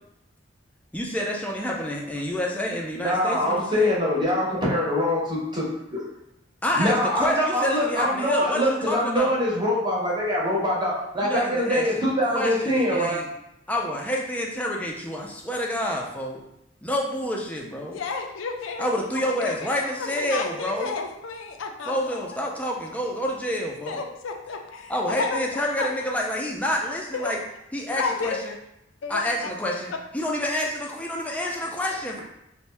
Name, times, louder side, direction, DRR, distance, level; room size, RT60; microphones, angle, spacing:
voice 1, 0.9-3.9 6.6-9.3 11.2-11.9 12.3-13.3 13.7-16.4 16.8-18.0 18.8-20.9 21.9-24.0 24.9-27.4 27.7-28.4 29.1-32.2, left 1 dB, 5° left, -1 dB, 0.4 m, -28 dB
voice 2, 2.9-5.7 5.9-6.0 6.7-13.2, equal, 25° right, -5 dB, 0.8 m, -24 dB
voice 3, 17.9-22.5 23.9-25.4 25.8-25.9 27.1-27.3 27.9-28.6 29.0-29.5, left 4 dB, 70° left, 4 dB, 0.4 m, -32 dB
2.6 x 2.1 x 3.2 m, 0.82 s
head